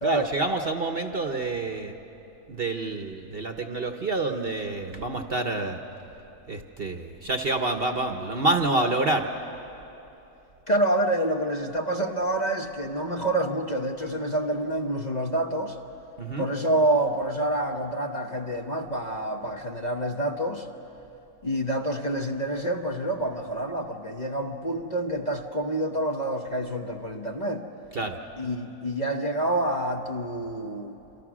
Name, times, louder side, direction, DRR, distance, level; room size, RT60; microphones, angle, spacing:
voice 1, 0.0-1.9 2.5-5.8 6.5-9.3 16.2-16.5 27.9-28.2, right 2 dB, 40° right, 5 dB, 1.1 m, -28 dB
voice 2, 10.7-15.8 16.4-20.7 21.4-27.6 28.4-31.0, right 1 dB, 30° left, 2 dB, 1.0 m, -27 dB
27.5 x 27.0 x 6.2 m, 3.0 s
omnidirectional pair, 1.7 m